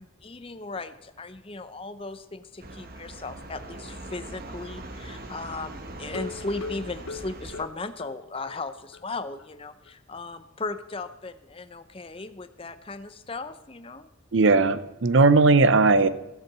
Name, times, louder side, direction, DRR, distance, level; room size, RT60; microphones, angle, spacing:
voice 1, 0.0-14.1, left 3 dB, 25° left, 11 dB, 0.6 m, -37 dB
sound 1, 2.6-7.7, right 2 dB, 45° right, 1.0 m, -41 dB
sound 2, 6.0-8.6 8.9-9.0 9.4-9.5 9.9-10.0, left 4 dB, 80° left, 0.8 m, -39 dB
voice 2, 14.3-16.1, right 3 dB, 60° right, 14 dB, 0.6 m, -18 dB
14.0 x 7.6 x 7.4 m, 0.96 s
head